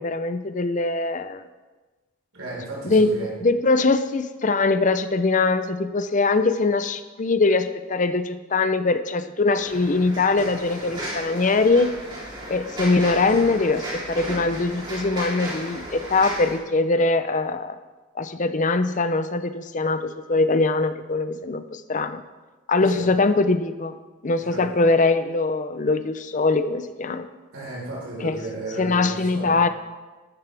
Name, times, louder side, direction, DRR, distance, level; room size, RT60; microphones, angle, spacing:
voice 1, 0.0-1.4 2.8-11.9 12.5-17.8 18.2-22.2 22.7-23.9 24.2-27.3 28.2-28.4 28.8-29.7, left 3 dB, 35° left, 11 dB, 0.6 m, -22 dB
voice 2, 2.3-3.4 22.8-23.1 24.3-24.7 27.5-29.6, right 2 dB, 75° right, -6 dB, 4.4 m, -34 dB
sound 1, 9.5-16.6, right 1 dB, 20° right, 3.3 m, -34 dB
14.0 x 13.0 x 3.4 m, 1.2 s
head